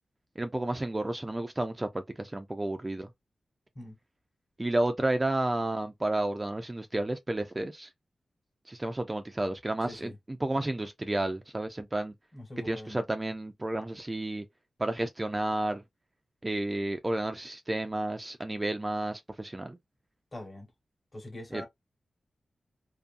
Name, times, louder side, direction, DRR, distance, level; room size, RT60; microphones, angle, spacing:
voice 1, 0.4-3.1 4.6-7.9 8.7-10.1 10.4-12.1 12.6-14.4 14.8-15.8 16.4-19.8 21.5-21.6, right 1 dB, 20° right, 0.3 m, -31 dB
voice 2, 9.8-10.2 10.5-10.7 12.3-13.0 20.3-20.7 21.1-21.6, left 1 dB, 30° left, 1.1 m, -43 dB
2.6 x 2.5 x 2.4 m
wide cardioid pair, 125°, 0 cm